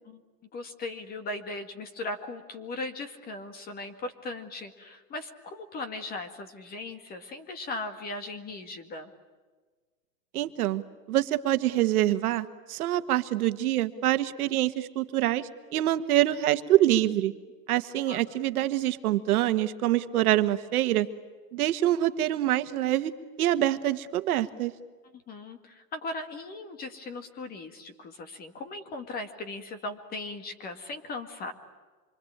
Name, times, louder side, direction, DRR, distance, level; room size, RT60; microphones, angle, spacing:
voice 1, 0.5-9.1 18.1-18.2 25.1-31.5, left 2 dB, 20° left, 9 dB, 1.9 m, -38 dB
voice 2, 10.3-10.8 11.1-17.3 17.7-21.1 21.5-23.1 23.4-24.7, right 13 dB, 65° right, 10 dB, 1.6 m, -25 dB
26.5 x 24.5 x 8.8 m, 1.4 s
supercardioid pair, 165°, 47 cm